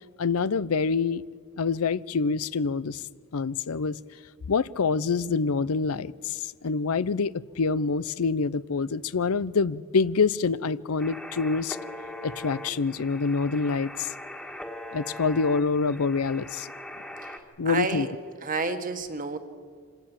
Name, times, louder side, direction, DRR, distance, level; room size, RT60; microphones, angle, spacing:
voice 1, 0.2-1.2 1.6-3.0 3.3-4.0 4.5-11.8 12.2-14.1 14.9-16.7 17.6-18.1, left 4 dB, 90° left, 0.6 m, -26 dB
sound 1, 11.0-17.4, left 1 dB, 5° left, 1.7 m, -41 dB
voice 2, 17.2-18.1 18.4-19.4, right 3 dB, 40° right, 1.6 m, -30 dB
26.0 x 17.0 x 7.4 m
head